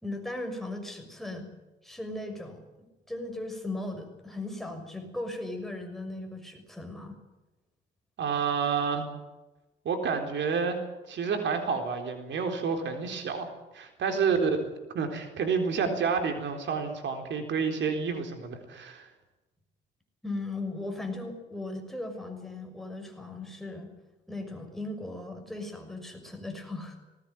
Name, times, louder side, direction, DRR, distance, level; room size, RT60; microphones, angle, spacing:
voice 1, 0.0-1.5 1.8-7.2 20.2-23.9 24.3-27.0, left 2 dB, ahead, 3 dB, 6.1 m, -37 dB
voice 2, 8.2-9.1 9.8-10.8 11.1-13.5 13.7-14.6 14.9-19.1, right 5 dB, 65° right, 6 dB, 4.1 m, -29 dB
19.5 x 19.0 x 9.2 m, 1.0 s
cardioid pair, 90°, 20 cm